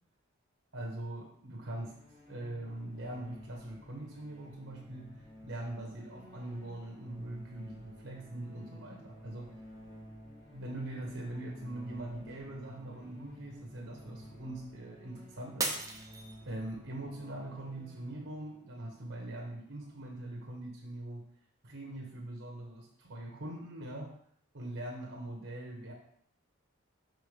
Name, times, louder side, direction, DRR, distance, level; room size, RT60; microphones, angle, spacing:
voice 1, 0.7-2.0 2.3-9.5 10.5-15.7 16.5-21.2 21.6-24.1 24.5-25.9, right 1 dB, 65° right, 0 dB, 1.1 m, -42 dB
sound 1, 1.6-20.2, equal, 20° left, 1.1 m, -53 dB
Shatter, 15.6-16.9 17.4-17.9 18.4-18.5, right 3 dB, 15° right, 0.6 m, -36 dB
6.2 x 4.6 x 3.3 m, 0.66 s
head